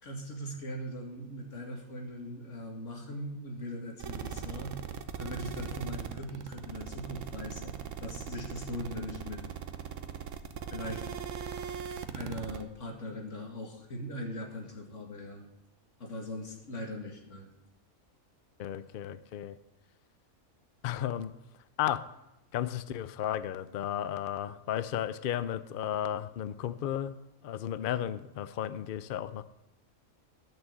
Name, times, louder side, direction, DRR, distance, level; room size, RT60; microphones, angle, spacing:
voice 1, 0.0-4.7 5.2-9.4 10.7-11.0 12.1-15.4 16.0-17.5, left 1 dB, 55° left, 2.4 m, -40 dB
sound 1, 4.0-12.6, right 8 dB, 60° right, 1.1 m, -39 dB
voice 2, 18.6-19.6 20.8-21.3 21.8-22.0 22.5-29.4, left 11 dB, 75° left, 0.5 m, -34 dB
12.5 x 6.2 x 7.6 m
omnidirectional pair, 1.5 m